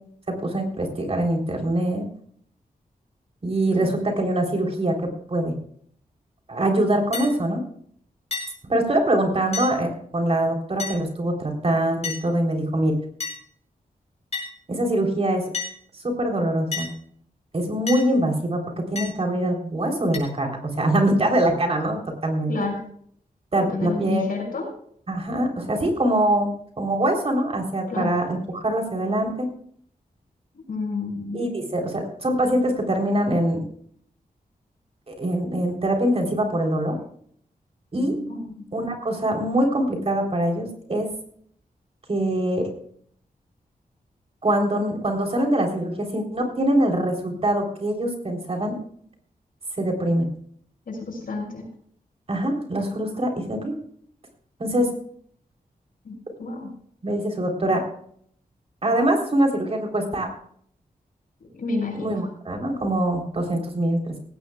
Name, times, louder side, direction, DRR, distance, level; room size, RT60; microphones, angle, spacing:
voice 1, 0.3-2.1 3.4-5.6 6.5-7.6 8.6-12.9 14.7-15.5 15.9-16.9 17.5-22.5 23.5-24.2 25.1-29.5 31.3-33.6 35.1-37.0 37.9-38.4 38.7-41.1 42.1-42.7 44.4-48.8 49.8-50.3 52.3-53.8 54.6-54.9 57.0-57.8 58.8-60.3 61.9-64.1, right 1 dB, 40° right, 2 dB, 3.6 m, -23 dB
sound 1, 7.1-7.3 8.3-8.5 9.5-9.7 10.8-11.0 12.0-12.2 13.2-13.4 14.3-14.5 15.5-15.7 16.7-16.9 17.9-18.1 19.0-19.1 20.1-20.2, left 5 dB, 45° left, 5.8 m, -30 dB
voice 2, 22.5-22.9 23.7-24.6 27.9-28.1 30.7-31.4 38.3-38.6 50.9-51.7 56.0-56.1 56.4-56.7 61.4-62.2, left 3 dB, 70° left, 1 dB, 6.5 m, -30 dB
18.0 x 17.5 x 2.4 m, 0.62 s
wide cardioid pair, 145°, 15 cm